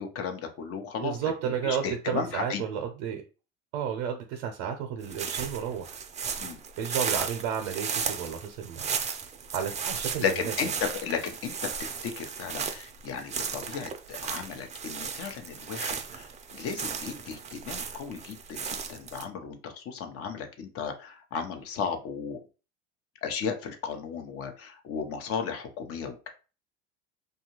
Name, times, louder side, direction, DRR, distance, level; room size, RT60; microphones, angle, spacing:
voice 1, 0.0-1.2 1.6-2.6 6.4-6.6 10.2-11.5 11.8-16.2 16.5-22.4 23.2-26.3, left 6 dB, 50° left, 5 dB, 0.7 m, -34 dB
voice 2, 1.0-3.2 3.7-6.0 6.8-9.0 9.5-10.7, right 8 dB, 75° right, 4 dB, 0.6 m, -32 dB
sound 1, 5.0-19.2, right 6 dB, 25° right, 0.4 m, -35 dB
2.7 x 2.3 x 3.0 m, 0.33 s
hypercardioid pair, 85°, 30 cm